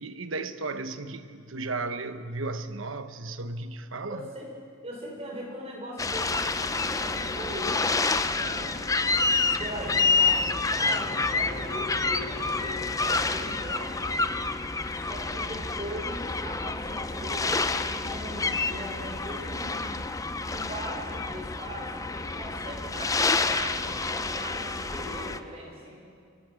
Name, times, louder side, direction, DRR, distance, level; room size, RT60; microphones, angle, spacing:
voice 1, 0.0-4.3, right 3 dB, 65° right, 10 dB, 1.0 m, -35 dB
voice 2, 4.1-4.5 4.8-8.8 9.4-14.0 14.9-19.9 20.5-26.0, equal, 30° right, -2 dB, 6.0 m, -39 dB
sound 1, 6.0-25.4, left 3 dB, 15° left, 0.6 m, -28 dB
sound 2, 10.0-16.7, equal, 40° left, 8.0 m, -48 dB
24.0 x 19.5 x 6.4 m, 2.3 s
head